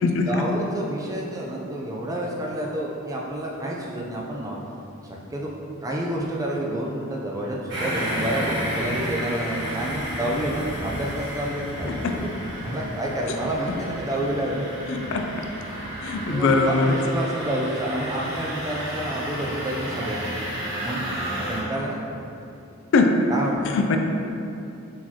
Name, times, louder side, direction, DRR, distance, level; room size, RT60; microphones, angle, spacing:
voice 1, 0.0-4.6 5.3-5.5 5.8-12.3 12.6-14.7 16.3-20.4 20.8-21.0 21.5-22.0 23.3-23.7, right 1 dB, 15° right, -3 dB, 0.4 m, -29 dB
sound 1, 7.7-21.6, equal, 55° right, 1.4 m, -32 dB
voice 2, 14.9-15.3 16.0-17.0 22.9-23.2 23.7-24.0, left 4 dB, 55° left, 4 dB, 0.3 m, -21 dB
4.2 x 4.2 x 2.8 m, 2.8 s
head